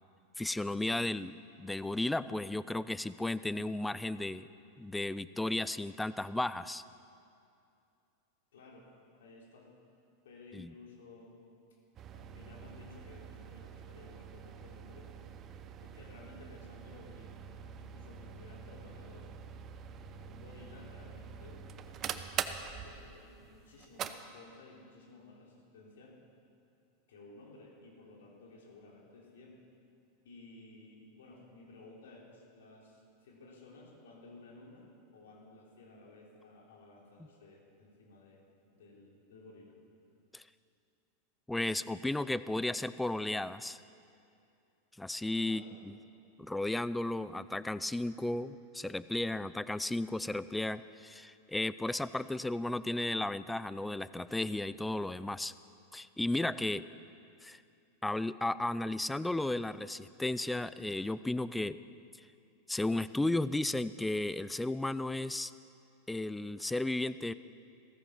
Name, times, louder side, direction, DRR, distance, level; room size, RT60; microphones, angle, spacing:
voice 1, 0.4-4.5 4.8-6.8 10.5-10.7 40.3-40.4 41.5-43.8 45.0-46.0 46.4-55.5 55.9-56.8 57.4-57.6 58.0-61.8 62.7-65.5 66.1-67.3, left 2 dB, 5° left, 16 dB, 0.5 m, -34 dB
voice 2, 8.5-9.7 10.2-11.5 12.1-15.1 15.8-17.4 17.8-19.3 20.2-26.2 27.1-29.6 30.2-38.4 38.7-39.8 45.4-45.8, left 2 dB, 75° left, -2 dB, 3.7 m, -55 dB
sound 1, 12.0-24.1, right 8 dB, 35° right, 0.9 m, -44 dB
16.0 x 14.5 x 5.8 m, 2.5 s
hypercardioid pair, 100°, 0 cm